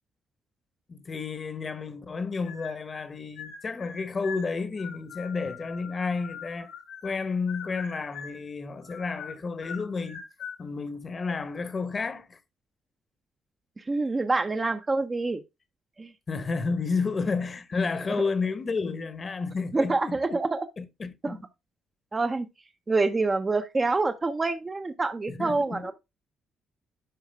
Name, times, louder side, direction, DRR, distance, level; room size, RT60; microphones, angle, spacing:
voice 1, 0.9-6.7 7.0-10.2 10.6-12.4 16.3-20.4 20.8-21.4 25.3-25.9, left 4 dB, 35° left, 1.1 m, -31 dB
sound 1, 2.4-3.1 3.4-7.2 7.5-8.5 8.8-10.6, left 7 dB, 85° left, 1.9 m, -42 dB
voice 2, 13.8-15.4 16.0-16.1 19.7-20.7 21.2-21.4 22.1-22.5 22.9-25.9, right 3 dB, 25° right, 0.8 m, -26 dB
11.5 x 4.8 x 3.4 m
cardioid pair, 90°, 0 cm